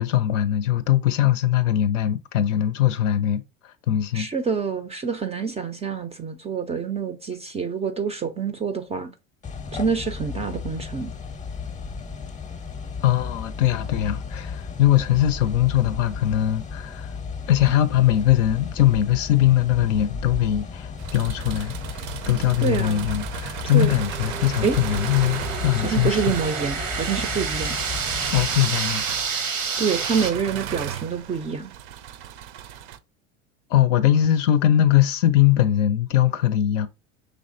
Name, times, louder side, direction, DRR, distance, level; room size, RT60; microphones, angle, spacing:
voice 1, 0.0-4.3 13.0-17.1 17.5-26.2 28.3-29.0 33.7-36.9, left 12 dB, 75° left, 0.5 m, -21 dB
voice 2, 4.1-9.1 9.7-11.1 22.6-23.1 23.6-23.9 24.6-24.8 25.8-27.8 29.8-31.7, right 6 dB, 20° right, 0.3 m, -27 dB
sound 1, 9.4-28.6, left 5 dB, 20° left, 0.7 m, -34 dB
sound 2, 21.0-33.0, right 10 dB, 65° right, 0.5 m, -36 dB
sound 3, 23.9-30.3, right 5 dB, 85° right, 0.9 m, -29 dB
5.0 x 3.3 x 2.5 m
hypercardioid pair, 75°, 38 cm